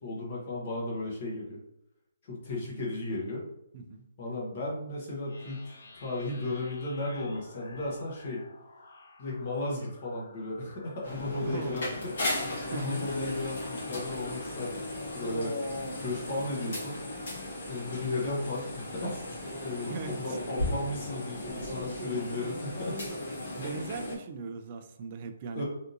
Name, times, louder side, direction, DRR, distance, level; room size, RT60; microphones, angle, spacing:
voice 1, 0.0-1.6 2.2-3.4 4.2-8.4 9.2-11.9 12.7-15.6 16.0-17.0 17.7-19.1 19.6-23.0 25.5-25.6, left 2 dB, 35° left, -4 dB, 1.0 m, -35 dB
voice 2, 3.7-4.0 11.4-11.8 12.7-13.1 19.9-20.4 20.9-21.0 23.6-25.6, right 4 dB, 30° right, 6 dB, 0.3 m, -38 dB
sound 1, 5.3-14.7, left 3 dB, 75° left, 0.6 m, -52 dB
sound 2, 11.0-24.2, left 1 dB, 55° left, 1.5 m, -36 dB
3.5 x 2.7 x 2.5 m, 0.84 s
hypercardioid pair, 175°, 0 cm